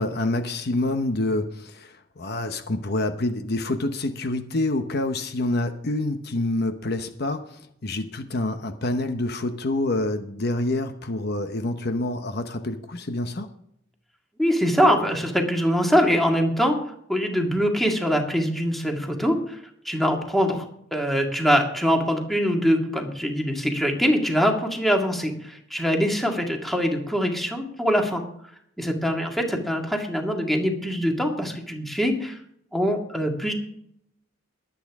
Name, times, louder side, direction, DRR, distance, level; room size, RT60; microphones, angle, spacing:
voice 1, 0.0-13.5, left 2 dB, 55° left, 8 dB, 1.0 m, -27 dB
voice 2, 14.4-16.8 17.1-19.6 19.9-28.2 28.8-32.4 32.7-33.5, equal, ahead, 2 dB, 2.0 m, -23 dB
22.0 x 8.8 x 3.6 m, 0.70 s
head